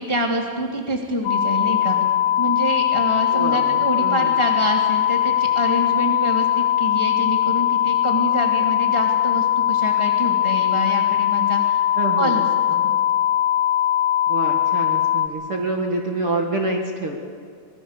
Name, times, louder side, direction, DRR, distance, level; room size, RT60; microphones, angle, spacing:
voice 1, 0.0-2.0 2.4-11.8 12.2-12.9, right 1 dB, 10° left, 0 dB, 2.1 m, -26 dB
sound 1, 1.3-15.3, left 11 dB, 85° left, 2.9 m, -20 dB
voice 2, 3.3-4.3 12.0-12.5 14.3-17.2, right 2 dB, 45° right, 0 dB, 2.3 m, -27 dB
25.5 x 21.5 x 6.8 m, 2.4 s
omnidirectional pair, 4.3 m